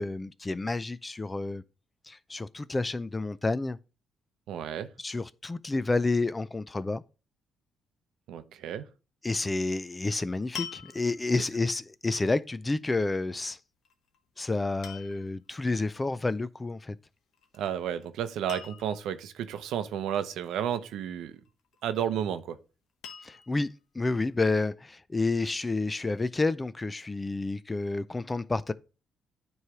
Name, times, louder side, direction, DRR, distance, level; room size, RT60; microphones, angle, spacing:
voice 1, 0.0-1.6 2.1-3.8 5.0-7.0 9.2-13.6 14.4-17.0 23.2-28.7, left 3 dB, 20° left, 0.4 m, -30 dB
voice 2, 4.5-4.9 8.3-8.9 17.6-21.4 21.8-22.6, right 9 dB, 85° right, 0.7 m, -32 dB
sound 1, 9.6-9.8 10.5-11.4 13.8-14.2 14.8-15.4 17.3-17.7 18.0-18.1 18.5-19.2 21.5-22.1 23.0-23.7 24.4-24.5, left 8 dB, 70° left, 1.1 m, -44 dB
9.5 x 3.2 x 4.8 m
cardioid pair, 90°, 0 cm